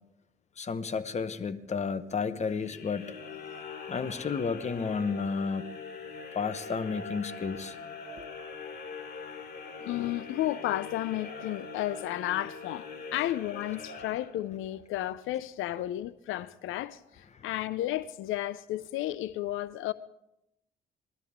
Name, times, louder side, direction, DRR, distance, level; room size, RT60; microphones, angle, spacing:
voice 1, 0.6-3.1 3.9-5.6 6.3-7.8 17.3-17.4, left 5 dB, 35° left, 0.9 m, -32 dB
sound 1, 2.5-14.7, left 4 dB, 50° left, 3.6 m, -43 dB
voice 2, 9.8-19.9, left 14 dB, 85° left, 0.5 m, -33 dB
20.0 x 13.0 x 3.6 m
cardioid pair, 90°, 20 cm